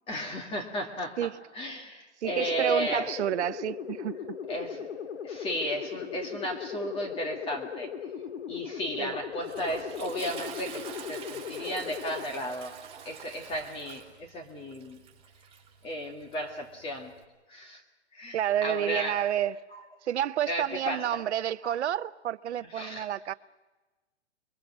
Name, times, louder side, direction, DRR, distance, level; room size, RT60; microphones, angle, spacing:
voice 1, 0.1-3.1 4.5-4.9 5.2-7.9 8.5-12.8 13.0-15.0 15.8-17.1 17.5-17.8 18.1-19.2 19.7-19.8 20.5-21.1 21.6-21.8 22.7-23.1, equal, 15° left, 2.0 m, -34 dB
sound 1, 2.2-12.2, left 7 dB, 70° left, 2.1 m, -38 dB
voice 2, 2.2-4.2 9.0-9.1 18.3-19.6 20.0-23.3, right 11 dB, 70° right, 0.8 m, -29 dB
Toilet flush, 8.9-17.2, right 8 dB, 15° right, 4.4 m, -46 dB
27.5 x 22.5 x 6.2 m
hypercardioid pair, 155°, 35 cm